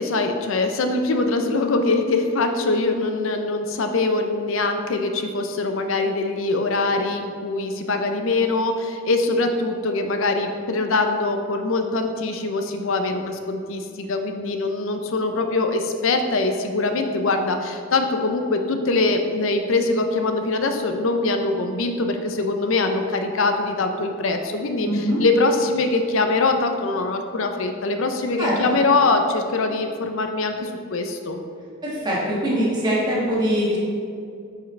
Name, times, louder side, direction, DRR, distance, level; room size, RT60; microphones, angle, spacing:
voice 1, 0.0-31.4, left 3 dB, 65° left, 6 dB, 0.6 m, -23 dB
voice 2, 24.8-25.2 28.4-28.8 31.8-33.8, equal, 20° right, -7 dB, 1.4 m, -23 dB
8.3 x 4.8 x 3.3 m, 2.4 s
head